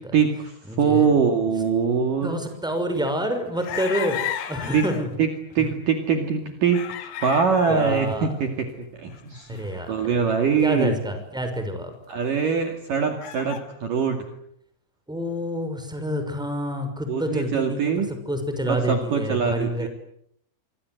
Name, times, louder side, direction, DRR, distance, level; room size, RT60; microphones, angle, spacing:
voice 1, 0.1-2.4 4.7-4.8 5.2-5.3 5.6-8.5 9.0-9.6 9.9-11.0 12.1-14.3 17.1-18.1 18.7-19.9, right 6 dB, 50° right, 5 dB, 3.5 m, -23 dB
voice 2, 0.7-1.2 2.2-5.1 5.6-5.7 7.7-8.3 9.5-10.2 10.6-11.9 15.1-19.9, equal, ahead, 7 dB, 5.3 m, -28 dB
sound 1, 3.6-5.1 5.5-5.6 6.7-8.0 8.4-8.5 9.1-10.5 11.8-11.9 12.2-12.3 13.2-13.6, left 11 dB, 80° left, 4.2 m, -34 dB
26.5 x 26.0 x 8.0 m, 0.72 s
omnidirectional pair, 5.3 m